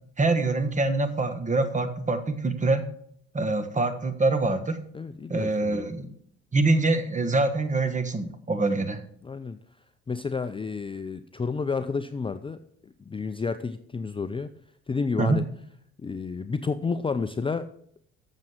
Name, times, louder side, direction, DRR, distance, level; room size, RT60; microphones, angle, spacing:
voice 1, 0.2-2.9 3.3-4.8 5.3-6.1 6.5-9.0 15.2-15.4, right 2 dB, 25° right, 10 dB, 1.4 m, -25 dB
voice 2, 4.9-5.9 9.2-9.6 10.1-14.5 14.9-15.4 16.0-17.7, left 4 dB, 20° left, 11 dB, 0.5 m, -31 dB
7.6 x 7.3 x 6.4 m, 0.67 s
supercardioid pair, 75°, 30 cm